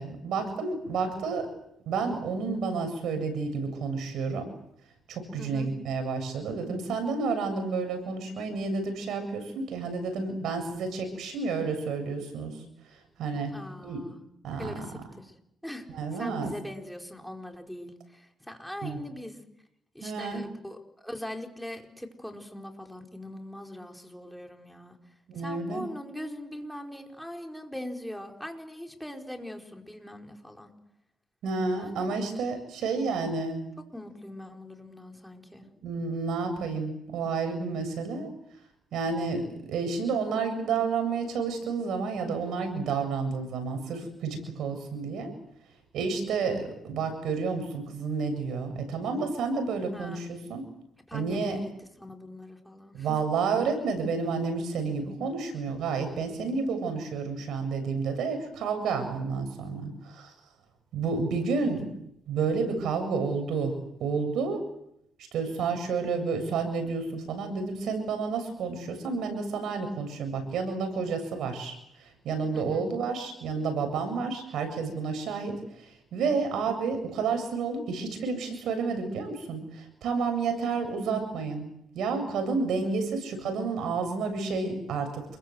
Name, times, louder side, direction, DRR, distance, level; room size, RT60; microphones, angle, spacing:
voice 1, 0.0-1.5 1.8-4.4 5.1-12.6 13.2-13.5 13.8-14.0 14.4-14.7 15.9-16.5 18.8-19.0 20.0-20.4 25.3-25.9 31.4-33.6 35.8-38.3 38.9-39.4 39.7-45.4 45.9-50.6 51.1-51.6 52.9-60.3 60.9-61.9 62.3-63.7 64.0-64.6 65.3-81.6 81.9-85.2, right 4 dB, 75° right, 7 dB, 7.7 m, -30 dB
voice 2, 5.4-5.7 13.5-14.2 14.5-15.3 15.6-15.9 16.1-19.4 19.9-25.0 25.4-30.7 31.8-32.1 33.9-35.7 49.9-50.2 51.1-51.7 52.0-53.2 61.5-61.6 72.5-72.9, left 1 dB, ahead, 3 dB, 4.7 m, -41 dB
28.5 x 23.0 x 8.0 m, 0.78 s
cardioid pair, 90°, 0 cm